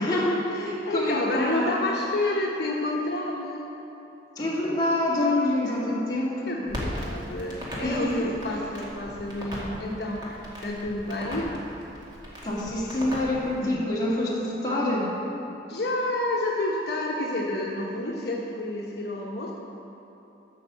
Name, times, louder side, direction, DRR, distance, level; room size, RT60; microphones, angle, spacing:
voice 1, 0.0-1.8 4.4-6.6 7.8-8.3 12.4-15.1, left 1 dB, 20° left, -7 dB, 2.4 m, -26 dB
voice 2, 0.8-3.7 5.6-5.8 6.5-11.5 13.6-13.8 15.7-19.5, left 1 dB, 60° left, -3 dB, 1.1 m, -29 dB
Crackle, 6.7-13.6, equal, 25° right, 2.2 m, -37 dB
12.5 x 5.6 x 7.5 m, 3.0 s
head